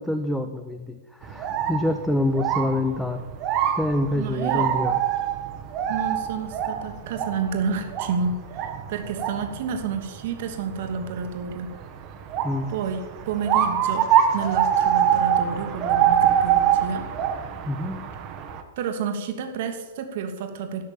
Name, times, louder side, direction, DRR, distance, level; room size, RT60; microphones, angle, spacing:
voice 1, 0.0-3.2 3.7-5.0 12.4-12.7 17.7-18.1, left 1 dB, ahead, 7 dB, 0.6 m, -26 dB
sound 1, 1.2-18.6, right 9 dB, 30° right, 1.1 m, -25 dB
voice 2, 4.1-4.7 5.9-11.7 12.7-17.1 18.8-20.8, right 5 dB, 50° right, 6 dB, 1.5 m, -30 dB
12.5 x 6.2 x 7.2 m, 1.2 s
figure-of-eight pair, 105°, 0 cm